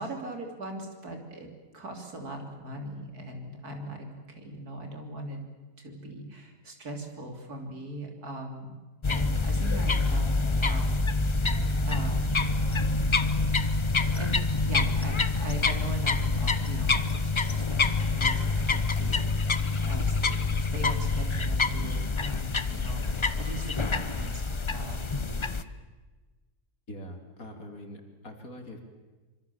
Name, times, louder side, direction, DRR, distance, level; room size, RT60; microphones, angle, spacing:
voice 1, 0.0-1.5 1.7-5.4 5.8-8.7 9.0-11.5 11.8-12.4 14.0-19.2 19.7-24.4 24.7-25.6, right 1 dB, 65° right, 3 dB, 4.0 m, -40 dB
sound 1, 9.0-25.6, left 3 dB, 30° left, 0.5 m, -26 dB
voice 2, 26.9-28.8, left 1 dB, 60° left, 5 dB, 3.3 m, -43 dB
25.5 x 25.5 x 7.2 m, 1.3 s
omnidirectional pair, 1.7 m